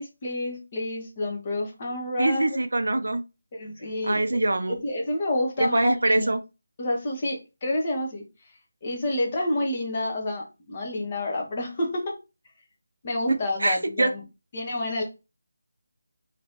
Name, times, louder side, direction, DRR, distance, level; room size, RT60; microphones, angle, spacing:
voice 1, 0.0-2.5 3.5-4.4 4.7-6.3 6.8-8.2 8.8-12.2 13.0-14.2 14.5-15.0, left 1 dB, 35° left, 1 dB, 1.0 m, -29 dB
voice 2, 2.2-3.2 4.0-4.8 5.6-6.4 13.6-14.1, right 2 dB, 65° right, 10 dB, 0.4 m, -23 dB
2.9 x 2.9 x 3.1 m, 0.28 s
figure-of-eight pair, 155°, 0 cm